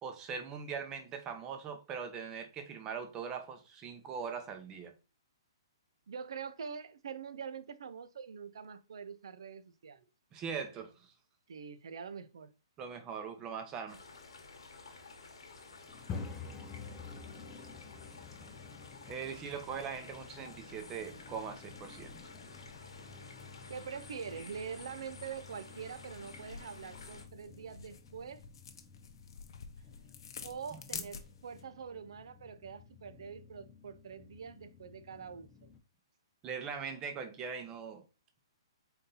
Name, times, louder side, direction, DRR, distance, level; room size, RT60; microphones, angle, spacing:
voice 1, 0.0-4.9 10.3-10.9 12.8-14.0 19.1-22.2 30.7-30.8 36.4-38.0, right 6 dB, 20° right, 0.7 m, -41 dB
voice 2, 6.1-10.1 11.5-12.5 23.7-28.4 30.4-35.7, right 6 dB, 75° right, 0.4 m, -44 dB
sound 1, 13.9-27.3, left 3 dB, 85° left, 1.0 m, -52 dB
sound 2, 15.9-35.8, left 5 dB, 20° left, 0.5 m, -51 dB
sound 3, 25.5-31.6, left 6 dB, 65° left, 0.7 m, -49 dB
4.0 x 2.7 x 3.8 m
hypercardioid pair, 150°, 3 cm